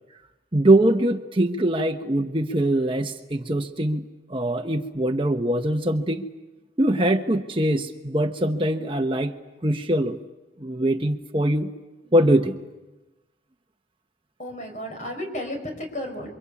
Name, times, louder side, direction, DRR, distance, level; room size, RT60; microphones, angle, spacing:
voice 1, 0.5-6.3 6.8-9.3 9.6-10.2 10.6-11.7 12.1-12.6, right 1 dB, 30° right, 5 dB, 1.1 m, -22 dB
voice 2, 14.4-16.3, left 1 dB, 40° left, 4 dB, 5.7 m, -33 dB
28.5 x 24.5 x 8.5 m, 1.1 s
head